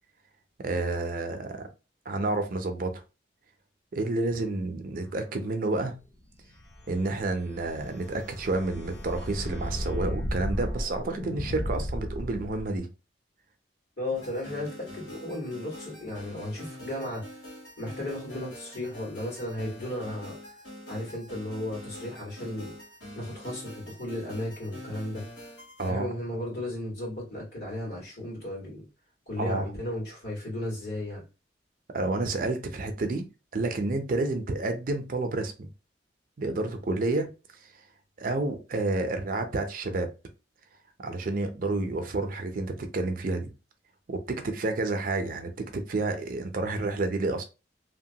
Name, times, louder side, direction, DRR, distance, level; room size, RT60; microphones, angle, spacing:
voice 1, 0.6-1.7 2.1-3.0 3.9-5.9 6.9-12.9 25.8-26.1 29.4-29.7 31.9-33.3 33.5-35.5 36.4-37.3 37.6-37.7 38.2-40.1 41.0-43.5 44.1-47.4, right 2 dB, 50° right, 0.5 m, -30 dB
sound 1, 6.4-12.8, equal, 25° left, 0.6 m, -34 dB
voice 2, 14.0-17.3 17.8-20.4 20.9-22.8 23.1-25.3 25.8-28.9 29.3-31.2, left 1 dB, 60° left, 1.6 m, -35 dB
sound 2, 14.1-25.9, left 1 dB, 85° left, 1.3 m, -45 dB
2.9 x 2.2 x 2.7 m
head